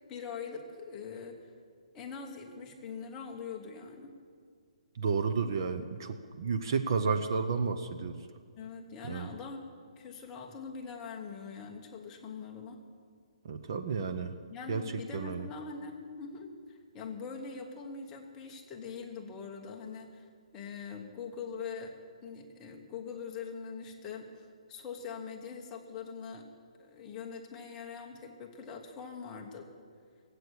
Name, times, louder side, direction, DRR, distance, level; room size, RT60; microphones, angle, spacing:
voice 1, 0.1-1.5 1.9-4.2 8.6-9.6 10.0-12.8 14.5-20.3 20.5-21.9 22.2-26.4 26.8-29.7, left 5 dB, 10° left, 1 dB, 0.9 m, -43 dB
voice 2, 5.0-8.2 9.1-9.3 13.4-14.4 14.7-14.8 15.1-15.5, right 5 dB, 35° right, 8 dB, 0.6 m, -31 dB
17.5 x 8.2 x 8.1 m, 2.1 s
hypercardioid pair, 175°, 4 cm